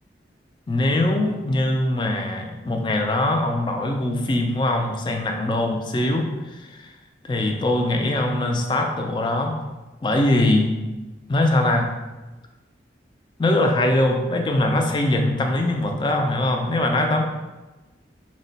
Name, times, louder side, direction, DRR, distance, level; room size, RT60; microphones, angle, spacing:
voice 1, 0.7-6.9 7.3-9.6 10.0-10.8 11.3-11.9 13.4-17.2, left 1 dB, 25° left, 3 dB, 0.4 m, -22 dB
4.4 x 2.1 x 3.9 m, 1.1 s
head